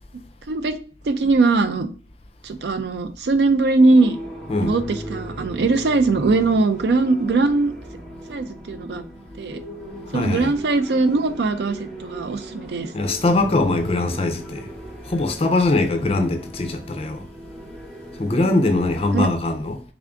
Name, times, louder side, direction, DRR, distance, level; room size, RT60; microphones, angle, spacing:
voice 1, 1.0-1.9 2.4-4.2 4.6-7.7 8.3-9.0 9.4-9.6 10.1-12.9 19.1-19.3, right 3 dB, 70° right, 0.4 m, -20 dB
sound 1, 3.8-19.2, right 1 dB, ahead, 0.9 m, -38 dB
voice 2, 10.1-10.5 12.9-14.7 15.1-17.2 18.2-19.8, left 2 dB, 35° left, 0.4 m, -21 dB
3.5 x 2.5 x 3.4 m
head